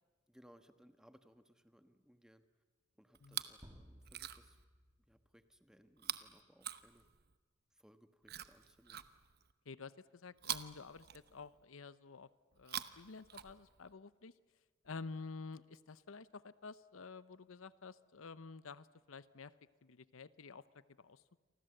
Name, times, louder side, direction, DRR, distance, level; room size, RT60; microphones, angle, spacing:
voice 1, 0.3-2.4 3.0-4.6 5.0-7.1 7.7-9.0, equal, 5° right, 8 dB, 1.2 m, -65 dB
Chewing mastication, 3.1-3.6 4.0-4.6 6.0-7.4 8.2-9.5 10.4-11.6 12.5-13.9 14.8-14.9, right 10 dB, 50° right, 1.0 m, -46 dB
sound 1, 3.6-5.6, equal, 20° right, 2.6 m, -60 dB
voice 2, 9.7-12.3 12.6-14.3 14.8-19.5 19.8-20.6 21.0-21.2, left 4 dB, 85° left, 16 dB, 0.8 m, -50 dB
29.0 x 24.5 x 7.8 m, 1.4 s
head